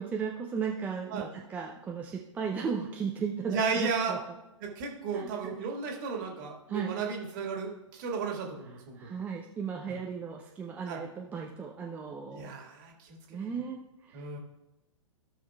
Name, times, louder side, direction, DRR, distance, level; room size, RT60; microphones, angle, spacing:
voice 1, 0.0-4.2 5.1-5.5 6.7-7.0 9.0-12.5 13.3-14.3, right 6 dB, 10° right, 0 dB, 0.5 m, -35 dB
voice 2, 3.5-4.2 4.6-9.1 9.9-10.0 10.9-11.0 12.3-13.5 14.1-14.4, right 5 dB, 35° right, 1 dB, 1.8 m, -34 dB
16.0 x 6.2 x 2.3 m, 0.96 s
figure-of-eight pair, 115°, 17 cm